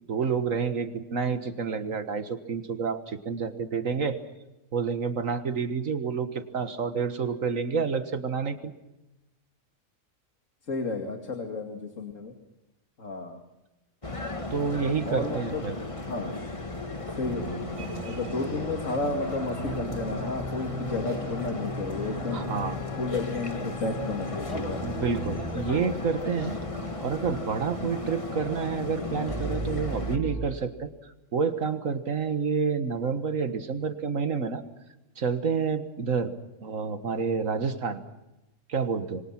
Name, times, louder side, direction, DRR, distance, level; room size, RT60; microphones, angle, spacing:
voice 1, 0.1-4.2 4.7-8.7 14.5-15.8 17.8-18.2 22.3-22.8 24.8-34.6 35.2-36.3 36.6-38.0 38.7-39.2, right 5 dB, 75° right, 9 dB, 1.8 m, -29 dB
voice 2, 10.7-12.3 13.0-13.4 15.1-16.3 17.1-17.5 18.0-22.4 23.0-24.9, left 3 dB, 70° left, 4 dB, 2.8 m, -32 dB
sound 1, 14.0-30.2, left 2 dB, 25° left, 1.9 m, -35 dB
sound 2, 17.2-30.5, equal, ahead, 5.8 m, -38 dB
Wind instrument woodwind instrument, 19.7-28.2, left 5 dB, 20° right, 6.0 m, -51 dB
27.5 x 23.5 x 5.9 m, 0.97 s
omnidirectional pair, 1.4 m